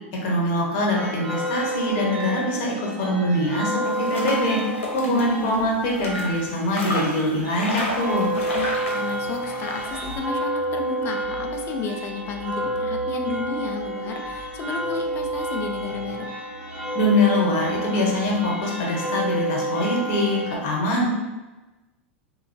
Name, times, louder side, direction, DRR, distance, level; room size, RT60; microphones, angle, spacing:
voice 1, 0.2-4.6 4.9-8.3 16.9-21.1, left 1 dB, 50° left, -2 dB, 0.9 m, -23 dB
sound 1, 0.9-20.6, right 1 dB, 60° right, 0.8 m, -30 dB
sound 2, 3.8-10.2, left 1 dB, 85° left, 0.7 m, -33 dB
voice 2, 5.1-5.6 8.5-16.3, left 4 dB, 35° left, 4 dB, 0.4 m, -32 dB
2.8 x 2.2 x 2.5 m, 1.1 s
hypercardioid pair, 95°, 7 cm